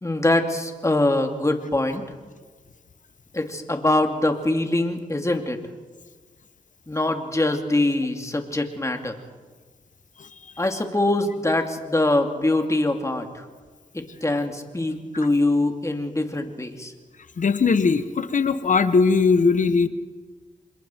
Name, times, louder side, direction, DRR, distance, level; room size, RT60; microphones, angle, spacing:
voice 1, 0.0-2.0 3.3-5.6 6.9-9.2 10.6-13.4 13.9-16.9, left 2 dB, 20° left, 4 dB, 2.7 m, -23 dB
voice 2, 17.4-19.9, left 4 dB, 55° left, 11 dB, 1.3 m, -19 dB
27.0 x 21.5 x 4.6 m, 1.4 s
cardioid pair, 55°, 15 cm